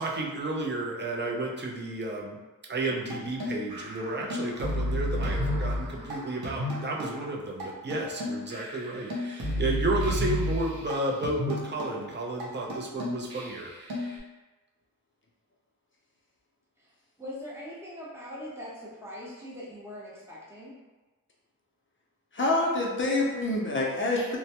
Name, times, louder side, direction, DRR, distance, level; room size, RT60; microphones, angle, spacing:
voice 1, 0.0-2.4 2.7-13.7, right 2 dB, 30° right, -2 dB, 0.4 m, -32 dB
sound 1, 3.1-7.2 7.6-7.7 7.9-11.0 11.2-12.0 12.4-12.5 12.7-14.2, left 1 dB, 85° right, 0.7 m, -32 dB
voice 2, 17.2-20.7, left 1 dB, 5° right, -8 dB, 0.7 m, -41 dB
voice 3, 22.3-24.4, left 2 dB, 35° left, -3 dB, 0.5 m, -26 dB
2.1 x 2.1 x 2.7 m, 1.2 s
wide cardioid pair, 100°, 37 cm